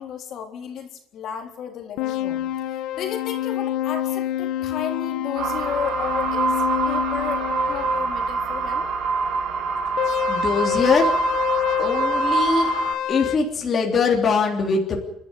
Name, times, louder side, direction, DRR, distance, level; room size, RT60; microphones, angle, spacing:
voice 1, 0.0-2.4 2.7-8.9, left 8 dB, 45° left, 4 dB, 3.6 m, -33 dB
sound 1, 2.0-8.1 10.0-13.4, left 12 dB, 75° left, 1.5 m, -27 dB
sound 2, 5.4-12.9, right 4 dB, 55° right, 5.3 m, -25 dB
voice 2, 10.3-11.2 11.8-12.7 13.1-15.0, left 4 dB, 25° left, 0 dB, 3.3 m, -22 dB
30.0 x 12.5 x 9.7 m, 0.80 s
cardioid pair, 170°, 0 cm